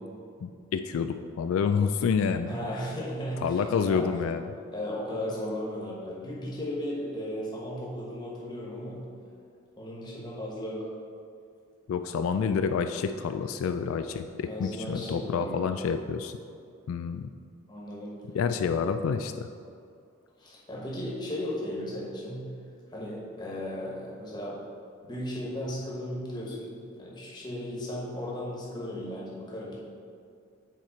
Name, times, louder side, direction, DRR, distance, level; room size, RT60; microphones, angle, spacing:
voice 1, 0.4-2.5 3.4-4.5 11.9-16.4 16.9-17.3 18.3-19.5, left 6 dB, 85° left, 8 dB, 0.3 m, -28 dB
voice 2, 2.5-4.0 4.7-9.0 9.8-10.8 14.5-15.6 17.7-18.1 20.4-22.4 22.9-24.6 25.1-29.8, left 1 dB, 20° left, -4 dB, 1.3 m, -35 dB
7.2 x 4.5 x 4.4 m, 2.4 s
head